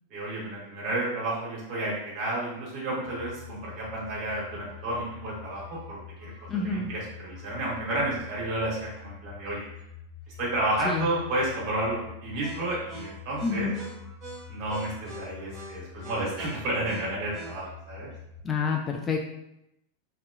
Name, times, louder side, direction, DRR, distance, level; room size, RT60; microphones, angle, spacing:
voice 1, 0.1-6.3 6.6-9.7 10.4-13.7 14.5-18.1, right 1 dB, 40° right, -5 dB, 1.4 m, -31 dB
sound 1, 3.0-18.4, left 3 dB, 20° right, 1.5 m, -44 dB
voice 2, 6.5-6.9 10.8-11.1 13.4-13.8 18.4-19.2, left 4 dB, 20° left, 2 dB, 0.3 m, -28 dB
3.2 x 2.8 x 2.5 m, 0.84 s
figure-of-eight pair, 90°, 0 cm